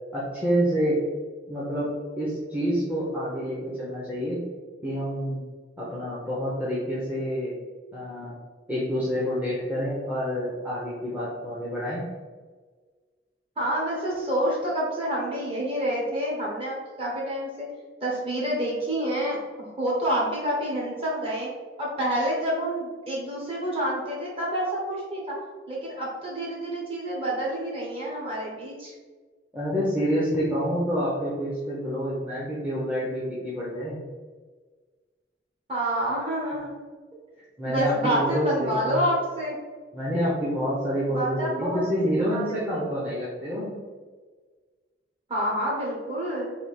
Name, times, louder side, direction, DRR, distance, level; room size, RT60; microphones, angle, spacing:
voice 1, 0.1-1.0 1.5-1.9 2.2-4.4 4.8-5.4 5.8-7.5 7.9-8.4 8.7-12.0 29.5-34.1 37.6-39.0 39.9-43.8, equal, 10° right, -8 dB, 0.7 m, -28 dB
voice 2, 13.6-17.7 18.0-21.5 21.8-25.3 25.7-28.9 35.7-36.8 37.6-39.5 41.1-41.9 42.3-42.9 45.3-46.5, right 1 dB, 30° right, -4 dB, 1.1 m, -28 dB
3.4 x 2.7 x 4.3 m, 1.4 s
head